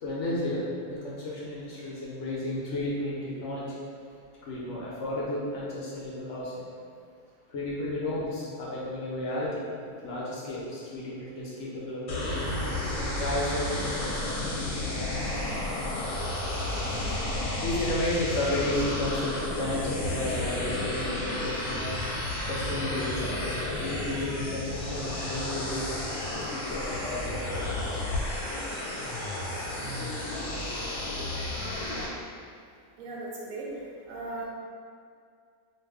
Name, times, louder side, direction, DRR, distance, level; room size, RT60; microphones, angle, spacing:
voice 1, 0.0-3.8 4.4-6.7 7.5-12.4 13.0-16.3 17.6-21.9 22.5-25.9 26.3-28.4, left 1 dB, 65° left, -6 dB, 0.8 m, -33 dB
sound 1, 12.1-32.1, left 1 dB, 90° left, 1.1 m, -32 dB
sound 2, 26.1-31.9, equal, 50° right, 0.5 m, -49 dB
voice 2, 31.5-31.9 33.0-33.7 34.1-34.4, right 2 dB, 75° right, -4 dB, 1.0 m, -38 dB
2.5 x 2.3 x 3.4 m, 2.2 s
omnidirectional pair, 1.5 m